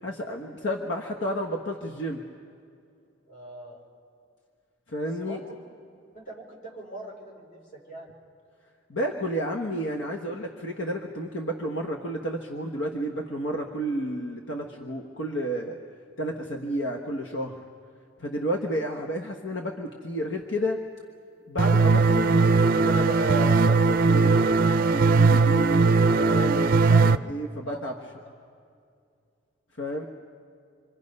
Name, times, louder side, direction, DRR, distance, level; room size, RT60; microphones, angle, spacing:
voice 1, 0.0-2.2 4.9-5.4 8.9-15.8 16.2-17.6 18.2-20.8 21.5-27.9 29.8-30.1, equal, 80° left, 2 dB, 1.3 m, -31 dB
voice 2, 3.3-3.8 5.2-5.4 6.1-8.1 27.7-27.9, right 2 dB, 45° left, -2 dB, 5.4 m, -42 dB
sound 1, 21.6-27.2, right 4 dB, 50° right, 0.5 m, -19 dB
27.0 x 24.5 x 5.4 m, 2.3 s
head